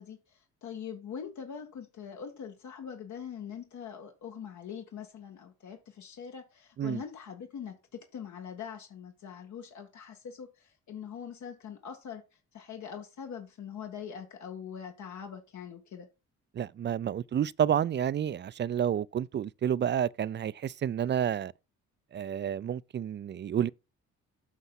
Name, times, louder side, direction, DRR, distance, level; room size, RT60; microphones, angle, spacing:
voice 1, 0.0-12.2 12.5-16.1, left 7 dB, 70° left, 1.8 m, -43 dB
voice 2, 16.6-21.5 22.1-23.7, right 9 dB, 35° right, 0.4 m, -30 dB
8.1 x 5.5 x 5.8 m
cardioid pair, 90°, 30 cm